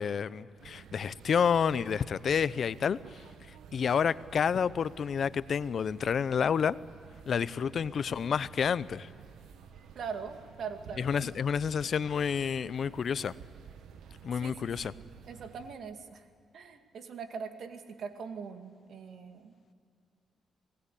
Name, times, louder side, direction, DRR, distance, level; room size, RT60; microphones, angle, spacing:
voice 1, 0.0-3.0 3.7-6.8 7.3-9.1 11.0-13.3 14.2-14.9, left 7 dB, 55° left, 0.7 m, -29 dB
sound 1, 0.6-15.7, right 7 dB, 85° right, 1.3 m, -51 dB
voice 2, 9.9-11.3 14.3-14.5 14.8-16.3 16.5-19.5, right 6 dB, 70° right, 2.3 m, -42 dB
27.5 x 19.5 x 8.4 m
cardioid pair, 95°, 0 cm